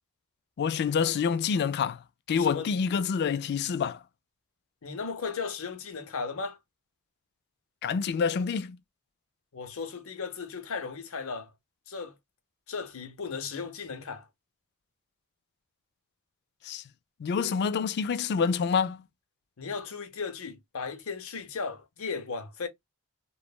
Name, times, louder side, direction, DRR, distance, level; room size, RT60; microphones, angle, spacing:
voice 1, 0.6-2.0 2.3-4.0 7.8-8.8 16.6-16.8 17.2-19.1, left 6 dB, 50° left, 0.3 m, -27 dB
voice 2, 2.4-2.7 4.8-6.6 9.5-11.5 11.9-12.2 12.7-14.3 19.6-22.7, left 5 dB, 70° left, 0.8 m, -36 dB
3.1 x 2.1 x 2.3 m
head